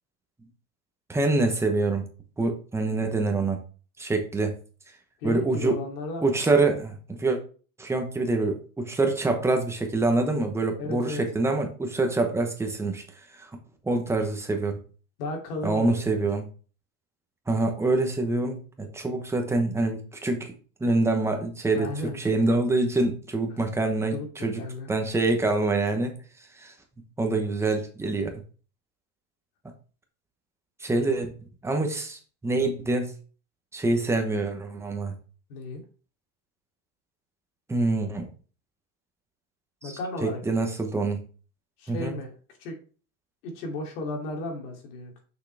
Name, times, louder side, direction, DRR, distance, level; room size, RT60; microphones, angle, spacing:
voice 1, 1.1-2.1 2.4-3.6 4.0-4.6 5.2-5.8 6.2-7.4 7.8-13.0 13.4-13.5 13.8-14.8 15.6-16.5 17.5-20.5 20.8-24.6 24.9-26.2 26.6-26.7 27.2-28.3 30.8-31.3 31.6-33.1 33.7-35.1 37.7-38.3 39.8-39.9 40.2-41.2 41.9-42.1, right 2 dB, 5° right, 4 dB, 0.8 m, -25 dB
voice 2, 5.2-6.3 10.8-11.2 15.2-16.3 21.7-22.2 24.1-24.9 35.5-35.8 39.8-40.4 41.8-42.3 42.6-42.8 43.4-45.2, left 2 dB, 90° left, 1 dB, 2.9 m, -34 dB
6.4 x 5.9 x 3.4 m, 0.38 s
supercardioid pair, 160°, 45 cm